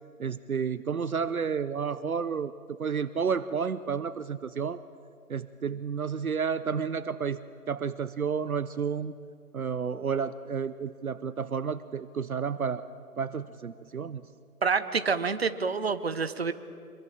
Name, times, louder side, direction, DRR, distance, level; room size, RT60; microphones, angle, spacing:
voice 1, 0.2-4.8 5.3-9.2 9.5-12.9 13.2-14.2, right 6 dB, 70° right, 15 dB, 0.8 m, -31 dB
voice 2, 14.6-16.5, right 5 dB, 40° right, 12 dB, 1.0 m, -27 dB
25.0 x 23.0 x 7.5 m, 2.4 s
figure-of-eight pair, 160°, 45 cm